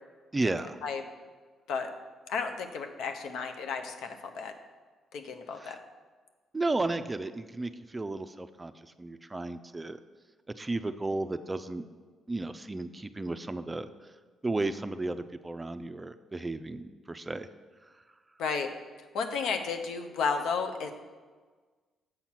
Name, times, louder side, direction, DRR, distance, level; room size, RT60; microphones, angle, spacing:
voice 1, 0.3-0.8 5.6-5.8 6.5-8.7 9.0-10.0 10.6-11.8 12.3-13.9 14.4-17.5, right 2 dB, 20° right, 10 dB, 0.4 m, -33 dB
voice 2, 2.3-4.5 5.1-5.8 18.4-18.7 19.1-20.9, left 5 dB, 85° left, 5 dB, 0.7 m, -32 dB
7.7 x 4.5 x 5.8 m, 1.4 s
cardioid pair, 85°, 0 cm